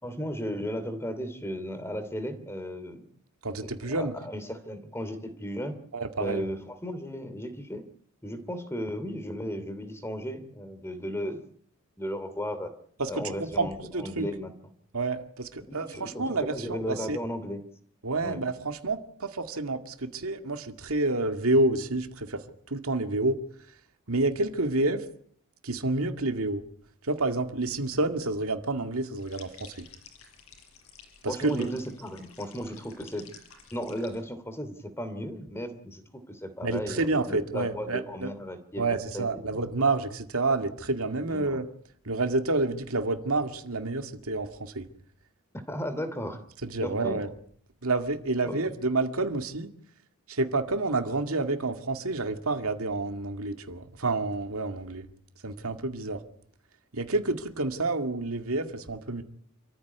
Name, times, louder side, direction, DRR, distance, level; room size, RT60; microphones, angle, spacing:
voice 1, 0.0-3.1 3.6-5.8 6.2-7.8 8.2-11.4 12.0-12.7 13.1-14.5 15.7-17.6 18.2-18.4 31.3-33.3 33.7-38.9 39.1-39.2 39.5-39.6 41.3-41.6 45.7-46.4 46.8-47.2 48.5-48.6, equal, 10° left, 10 dB, 2.8 m, -35 dB
voice 2, 3.4-4.1 5.9-6.4 13.0-14.3 14.9-17.2 18.0-23.4 24.1-25.1 25.6-26.6 27.0-29.9 31.2-31.7 36.6-38.3 38.8-41.7 42.0-44.9 46.6-47.3 47.8-49.7 50.3-55.1 55.4-56.2 56.9-59.2, right 2 dB, 75° right, 7 dB, 2.2 m, -29 dB
sound 1, 29.2-34.2, left 6 dB, 80° left, 6.0 m, -52 dB
27.5 x 14.5 x 9.4 m, 0.63 s
head